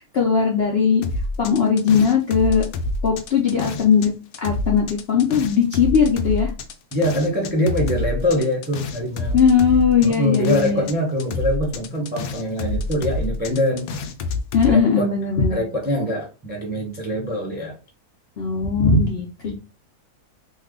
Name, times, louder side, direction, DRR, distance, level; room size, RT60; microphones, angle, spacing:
voice 1, 0.1-1.0 1.4-2.7 3.0-4.1 4.4-6.5 9.3-10.9 14.5-15.6 18.4-19.3, left 6 dB, 60° left, 0 dB, 0.7 m, -18 dB
sound 1, 1.0-4.1 4.3-10.9 11.2-14.7, left 2 dB, 80° left, 1.1 m, -27 dB
voice 2, 6.9-9.4 10.0-13.9 14.6-15.1 15.5-17.8 19.4-19.5, equal, 10° right, -1 dB, 0.5 m, -24 dB
3.2 x 2.2 x 3.6 m, 0.33 s
omnidirectional pair, 1.7 m